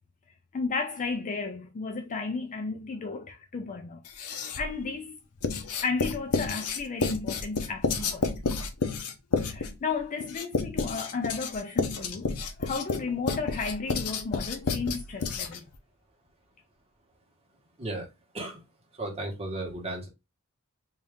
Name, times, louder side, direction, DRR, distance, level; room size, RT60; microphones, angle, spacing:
voice 1, 0.5-5.2 5.8-8.4 9.4-15.7, left 4 dB, 35° left, 0.4 m, -33 dB
Writing, 4.1-4.8 5.4-15.8, left 4 dB, 80° left, 0.6 m, -30 dB
voice 2, 19.0-20.1, right 2 dB, 30° right, 1.2 m, -34 dB
3.6 x 2.6 x 3.4 m
head